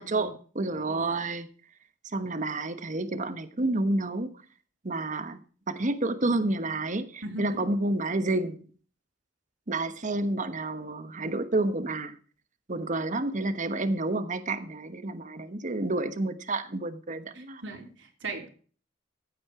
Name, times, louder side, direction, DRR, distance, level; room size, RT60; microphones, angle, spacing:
voice 1, 0.0-1.5 2.1-4.3 4.8-5.4 5.7-8.6 9.7-12.2 12.7-17.6, right 2 dB, 40° right, 11 dB, 1.2 m, -29 dB
voice 2, 0.7-1.0 7.2-7.6 17.3-18.5, right 2 dB, 75° right, 2 dB, 3.3 m, -39 dB
15.5 x 8.7 x 4.9 m, 0.42 s
head